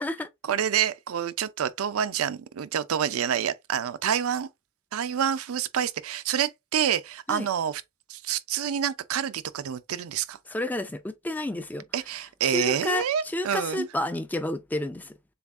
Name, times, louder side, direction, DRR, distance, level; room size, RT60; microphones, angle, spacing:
voice 1, 0.4-4.5 4.9-7.8 8.1-10.4 11.9-13.9, right 8 dB, 80° right, 0.4 m, -27 dB
voice 2, 10.5-11.8 12.4-15.1, left 1 dB, 10° left, 0.3 m, -30 dB
6.9 x 2.4 x 2.4 m
head